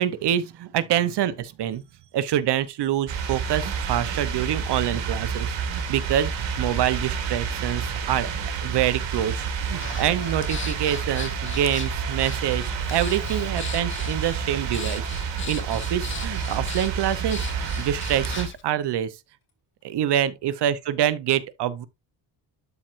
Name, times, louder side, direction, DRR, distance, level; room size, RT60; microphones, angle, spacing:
voice 1, 0.0-1.8 2.1-6.3 6.6-8.3 8.6-19.2 19.8-21.9, right 11 dB, 65° right, 0.8 m, -26 dB
sound 1, 3.1-18.5, right 6 dB, 80° right, 2.0 m, -29 dB
sound 2, 3.5-3.6 5.3-8.8 9.1-17.8 19.5-19.6 19.9-20.0 20.3-20.4, left 4 dB, 50° left, 2.9 m, -48 dB
Breathing, 9.8-18.6, left 7 dB, 25° left, 0.6 m, -39 dB
12.0 x 4.4 x 2.5 m
cardioid pair, 145°, 44 cm